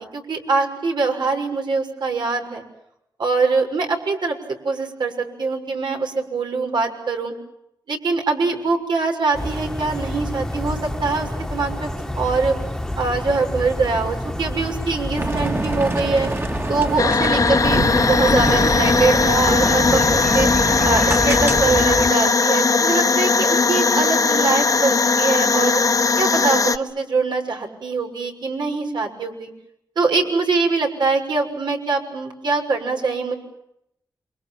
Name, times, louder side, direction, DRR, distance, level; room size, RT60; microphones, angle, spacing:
voice 1, 0.0-2.6 3.2-7.3 7.9-11.9 12.2-12.5 13.0-16.3 16.7-20.5 20.8-25.8 26.2-29.5 30.0-33.3, right 4 dB, 70° right, 3 dB, 6.4 m, -23 dB
sound 1, 9.3-22.1, left 1 dB, 5° left, 1.7 m, -28 dB
sound 2, 15.2-21.8, right 2 dB, 30° right, 2.4 m, -26 dB
sound 3, 17.0-26.8, left 4 dB, 50° left, 1.3 m, -18 dB
28.5 x 26.0 x 7.5 m, 0.80 s
cardioid pair, 70°, 8 cm